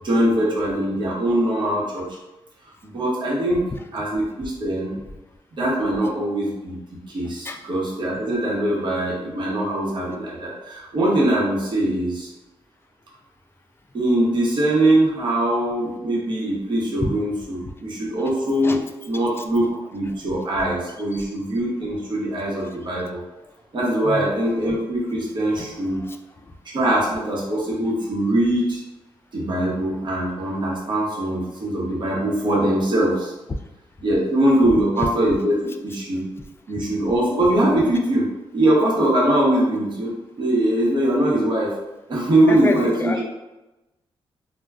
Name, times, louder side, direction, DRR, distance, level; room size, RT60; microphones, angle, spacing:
voice 1, 0.0-2.1 2.8-3.6 3.9-5.0 5.5-6.8 7.1-12.3 13.9-18.8 19.1-23.2 23.7-26.0 26.6-28.8 29.3-33.3 34.0-36.3 36.7-38.3 38.5-40.1 40.4-41.8 42.1-43.2, right 1 dB, 50° right, -5 dB, 0.9 m, -22 dB
voice 2, 42.5-43.2, left 2 dB, 25° left, 5 dB, 0.3 m, -27 dB
2.2 x 2.2 x 3.5 m, 1.0 s
cardioid pair, 85°, 10 cm